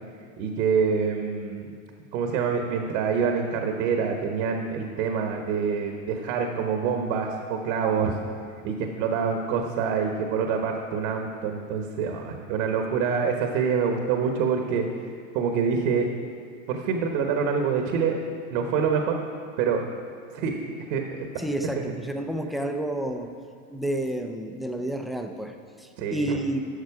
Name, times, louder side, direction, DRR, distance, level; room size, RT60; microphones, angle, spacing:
voice 1, 0.4-1.7 2.1-8.1 8.6-16.1 16.7-18.2 18.5-19.1 19.6-19.8 20.3-20.5 20.9-21.3 21.7-21.8 26.0-26.4, right 6 dB, 60° right, 4 dB, 1.2 m, -26 dB
voice 2, 21.4-23.3 23.7-26.6, right 1 dB, ahead, 4 dB, 0.4 m, -30 dB
12.0 x 6.5 x 4.8 m, 2.3 s
hypercardioid pair, 110°, 42 cm